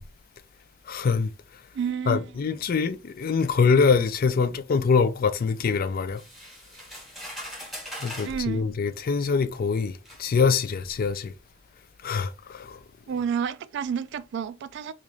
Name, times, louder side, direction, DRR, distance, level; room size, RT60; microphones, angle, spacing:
voice 1, 0.9-1.3 2.1-6.2 8.0-11.3 12.0-12.8, left 5 dB, 45° left, 0.4 m, -24 dB
voice 2, 1.7-2.3 8.2-8.7 13.1-14.9, right 7 dB, 60° right, 0.3 m, -30 dB
sound 1, 6.2-8.4 9.3-9.4 10.1-10.2, equal, ahead, 1.0 m, -40 dB
3.0 x 2.4 x 3.7 m
head